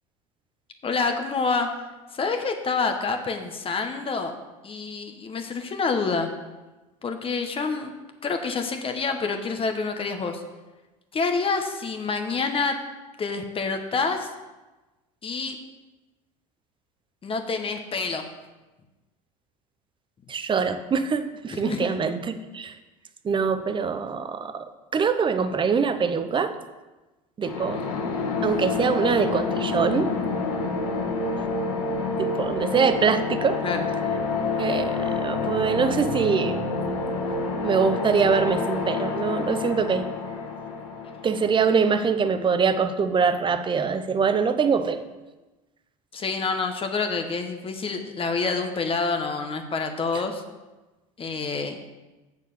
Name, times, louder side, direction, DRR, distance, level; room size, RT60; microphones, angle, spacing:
voice 1, 0.8-1.7 2.1-4.3 4.6-6.3 7.0-7.9 8.2-10.4 11.1-12.8 13.2-14.3 15.2-15.6 17.2-18.3 21.5-22.1 27.7-28.0 33.6-33.9 46.1-50.4 51.2-51.8, left 4 dB, 30° left, 5 dB, 1.3 m, -27 dB
voice 2, 20.3-22.8 23.2-24.7 24.9-26.6 27.4-27.8 28.4-30.1 31.9-33.6 34.6-36.6 37.6-40.1 41.2-45.0 50.1-50.2, right 5 dB, 30° right, 10 dB, 0.9 m, -24 dB
sound 1, 27.4-42.1, left 3 dB, 85° left, 1.7 m, -28 dB
7.3 x 6.7 x 6.8 m, 1.1 s
supercardioid pair, 90°, 18 cm